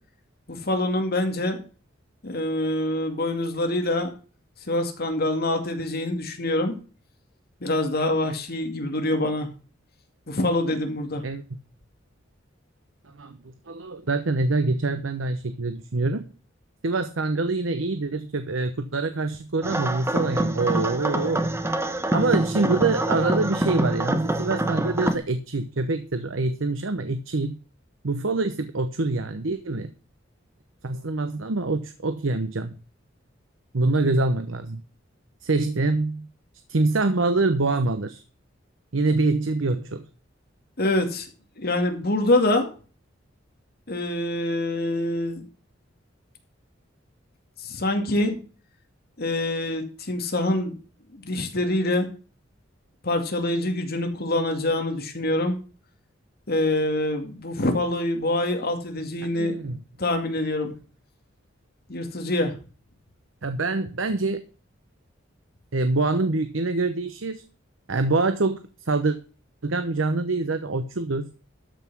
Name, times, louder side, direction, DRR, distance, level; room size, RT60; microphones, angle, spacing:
voice 1, 0.5-1.6 2.2-4.1 4.7-6.7 7.6-9.5 10.3-11.2 40.8-41.3 41.6-42.7 43.9-45.4 47.6-48.4 49.2-50.7 51.1-52.1 53.0-55.6 56.5-59.6 60.0-60.7 61.9-62.5, left 1 dB, 55° left, 4 dB, 2.4 m, -25 dB
voice 2, 13.7-16.3 16.8-21.4 22.1-27.6 28.0-29.9 30.8-32.7 33.7-34.8 35.4-36.3 36.7-38.2 38.9-40.1 59.2-59.8 63.4-64.4 65.7-67.4 67.9-69.2 69.6-71.3, right 3 dB, 85° right, 10 dB, 0.9 m, -25 dB
sound 1, 19.6-25.2, right 1 dB, 15° right, 1.1 m, -25 dB
13.0 x 5.8 x 6.1 m, 0.37 s
head